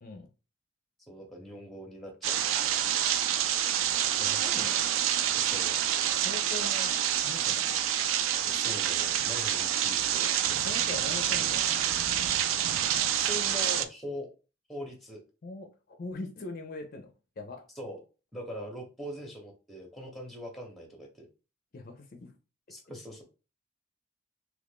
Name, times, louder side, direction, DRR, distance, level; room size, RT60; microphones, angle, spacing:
voice 1, 1.1-2.3 5.2-5.8 8.4-10.3 13.2-14.3 14.7-15.2 17.8-18.0 18.3-21.3 22.7-23.2, equal, ahead, 0.7 m, -41 dB
sound 1, 2.2-13.8, right 10 dB, 90° right, 0.3 m, -27 dB
voice 2, 4.2-4.9 6.2-7.8 10.6-11.7 15.4-17.6 21.7-22.3, left 2 dB, 45° left, 0.4 m, -41 dB
2.9 x 2.4 x 3.5 m
head